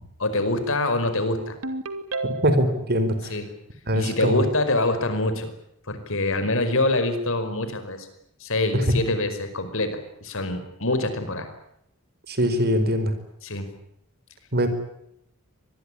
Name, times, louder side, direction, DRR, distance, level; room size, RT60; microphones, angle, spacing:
voice 1, 0.2-1.6 3.3-3.5 3.9-5.5 5.9-8.1 8.4-11.5 13.4-13.7, left 2 dB, 65° left, 10 dB, 5.1 m, -25 dB
Ringtone, 1.6-2.8, right 2 dB, 70° right, 2.7 m, -31 dB
voice 2, 2.2-3.3 3.9-4.4 8.7-8.8 12.3-13.2 14.5-14.7, equal, 45° right, 10 dB, 4.6 m, -22 dB
25.5 x 20.5 x 9.9 m, 0.76 s
head